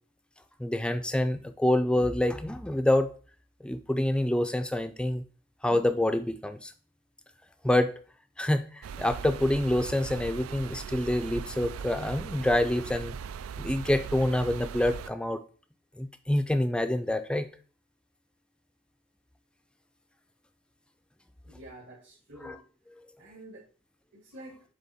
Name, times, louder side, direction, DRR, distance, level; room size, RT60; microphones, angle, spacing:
voice 1, 0.6-3.1 3.6-5.2 5.6-6.7 7.6-7.9 8.4-13.2 13.6-15.4 16.0-17.5 22.4-22.6, left 1 dB, 5° left, 9 dB, 0.4 m, -27 dB
sound 1, 8.8-15.1, right 7 dB, 85° right, 0.3 m, -39 dB
voice 2, 21.4-22.6 23.2-23.6 24.1-24.6, right 1 dB, 60° right, -6 dB, 1.9 m, -48 dB
7.3 x 3.4 x 4.2 m, 0.39 s
head